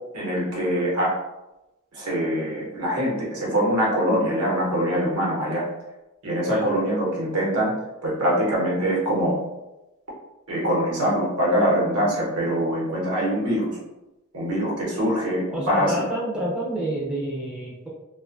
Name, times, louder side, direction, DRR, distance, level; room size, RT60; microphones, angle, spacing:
voice 1, 0.1-1.1 1.9-5.6 6.2-7.7 8.0-9.4 10.5-13.8 14.3-15.9, equal, 80° right, -5 dB, 0.9 m, -23 dB
voice 2, 15.5-17.9, right 1 dB, 5° right, -6 dB, 0.4 m, -28 dB
2.4 x 2.3 x 2.4 m, 0.99 s
head